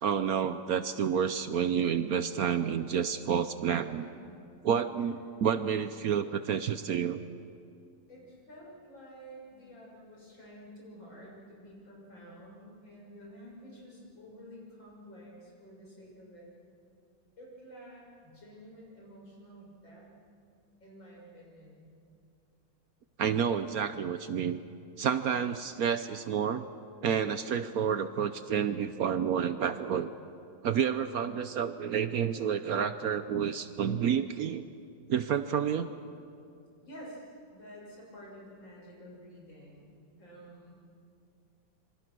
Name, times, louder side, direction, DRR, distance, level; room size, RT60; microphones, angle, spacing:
voice 1, 0.0-4.0 4.6-7.2 23.2-24.6 25.0-26.6 27.0-30.1 30.6-34.6 35.1-35.9, right 8 dB, 65° right, 11 dB, 1.0 m, -29 dB
voice 2, 4.0-4.4 5.0-5.1 8.1-16.5 17.4-20.1 20.8-21.9 36.8-40.8, equal, 85° left, -3 dB, 7.2 m, -50 dB
26.0 x 24.5 x 6.2 m, 2.5 s
omnidirectional pair, 2.0 m